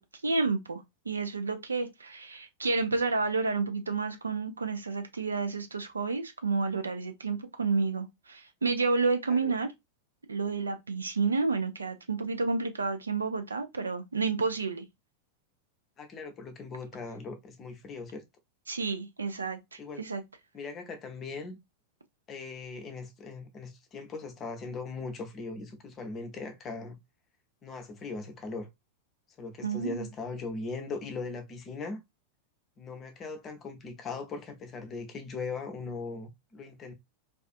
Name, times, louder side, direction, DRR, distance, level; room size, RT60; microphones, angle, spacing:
voice 1, 0.2-9.7 10.3-14.8 18.7-20.2 29.6-30.1, right 4 dB, 75° right, 0.4 m, -30 dB
voice 2, 16.0-18.2 19.8-20.0 20.5-21.6 22.3-27.0 27.6-28.7 29.4-32.0 32.8-36.9, left 4 dB, 25° left, 0.6 m, -39 dB
2.4 x 2.4 x 2.3 m
figure-of-eight pair, 90°, 0 cm